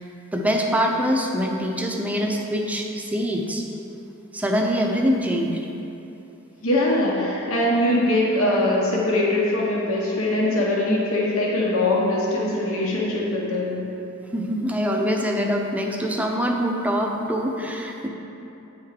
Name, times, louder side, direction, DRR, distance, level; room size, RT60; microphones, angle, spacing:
voice 1, 0.3-3.6 4.3-5.7 14.3-18.1, equal, 5° right, 1 dB, 0.5 m, -24 dB
voice 2, 6.6-13.8, left 1 dB, 80° left, -4 dB, 1.0 m, -22 dB
8.8 x 3.6 x 4.9 m, 3.0 s
head